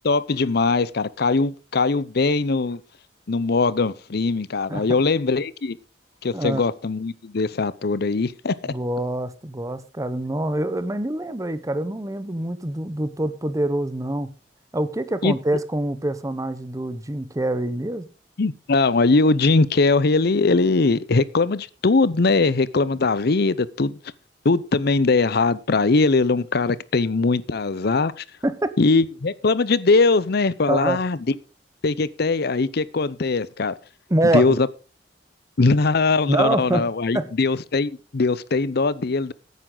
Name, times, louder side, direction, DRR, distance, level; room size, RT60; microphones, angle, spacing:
voice 1, 0.0-2.8 3.3-5.8 6.2-8.6 15.2-15.3 18.4-24.0 24.4-28.2 28.8-31.2 31.8-33.7 34.3-34.7 35.6-39.3, left 3 dB, 60° left, 0.7 m, -21 dB
voice 2, 6.3-6.6 8.6-14.3 14.7-18.1 28.4-28.7 30.7-31.0 34.1-34.6 36.3-36.9 37.1-37.3, right 1 dB, 20° right, 0.9 m, -25 dB
15.5 x 9.4 x 3.9 m
head